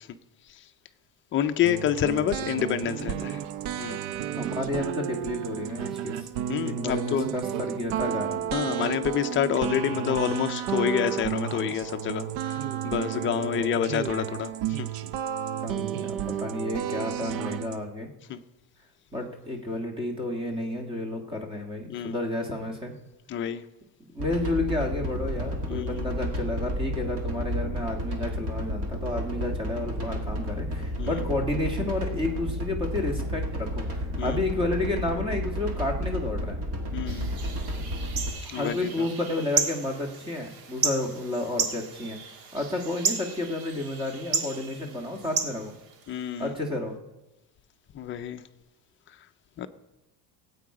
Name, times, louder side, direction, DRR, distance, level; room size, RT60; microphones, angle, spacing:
voice 1, 1.3-3.1 3.8-4.0 6.5-7.3 8.5-12.2 12.8-14.5 14.8-14.9 18.3-18.4 21.9-22.1 23.3-23.6 25.7-25.9 31.0-31.1 34.2-34.3 36.9-37.3 38.5-38.7 46.1-46.5 48.0-48.4 49.6-49.7, left 10 dB, 30° left, 8 dB, 0.5 m, -27 dB
sound 1, 1.6-17.8, right 10 dB, 85° right, 0.8 m, -32 dB
voice 2, 4.3-6.3 6.6-8.4 13.4-13.7 15.6-18.1 19.1-22.9 24.1-36.6 37.9-38.0 38.4-42.2 42.5-45.8 46.4-47.0, left 2 dB, 15° right, 2 dB, 1.6 m, -31 dB
sound 2, 24.2-38.3, equal, 35° right, 1.7 m, -31 dB
sound 3, 37.1-46.4, right 6 dB, 60° right, 1.5 m, -33 dB
18.0 x 8.6 x 4.8 m, 1.0 s
cardioid pair, 175°, 40 cm